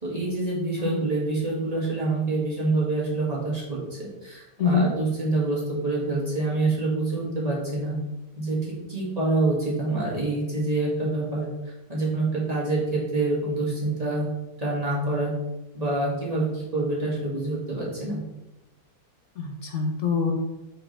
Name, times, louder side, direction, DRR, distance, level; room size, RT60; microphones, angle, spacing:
voice 1, 0.0-8.0 8.4-8.6 8.9-14.3 14.6-15.3 15.7-18.2, right 2 dB, 20° right, -6 dB, 1.6 m, -26 dB
voice 2, 4.6-4.9 19.4-20.3, left 5 dB, 65° left, 2 dB, 0.7 m, -24 dB
6.5 x 4.9 x 3.2 m, 1.0 s
omnidirectional pair, 2.1 m